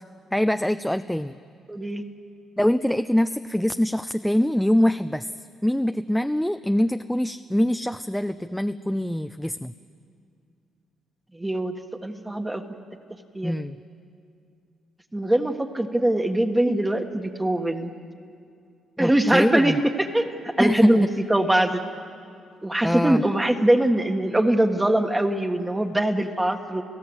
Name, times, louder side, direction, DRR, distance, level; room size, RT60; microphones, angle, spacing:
voice 1, 0.3-1.4 2.6-5.3 5.6-9.7 13.4-13.8 19.0-19.8 20.6-21.1 22.8-23.2, equal, 5° left, 10 dB, 0.6 m, -24 dB
voice 2, 1.7-2.0 11.3-11.7 12.0-12.6 13.3-13.5 15.1-17.9 19.0-19.7 20.1-21.8 22.6-26.8, right 1 dB, 10° right, 4 dB, 1.5 m, -22 dB
30.0 x 17.0 x 8.0 m, 2.4 s
cardioid pair, 90°, 0 cm